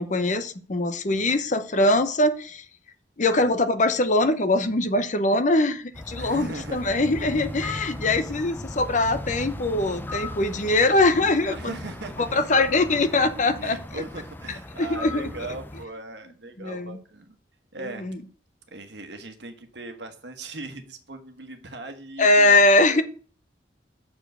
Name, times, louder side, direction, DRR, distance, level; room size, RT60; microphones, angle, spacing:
voice 1, 0.0-2.6 3.2-11.8 12.2-13.8 14.8-15.3 16.6-17.0 18.0-18.2 22.2-23.0, left 2 dB, 45° left, 11 dB, 0.8 m, -22 dB
voice 2, 1.1-1.4 6.2-7.0 8.3-8.4 11.5-12.4 13.6-17.4 17.7-18.1 18.7-23.0, right 2 dB, 75° right, 6 dB, 1.3 m, -39 dB
sound 1, 5.9-15.9, left 2 dB, 10° left, 0.5 m, -37 dB
6.9 x 4.6 x 6.6 m, 0.41 s
head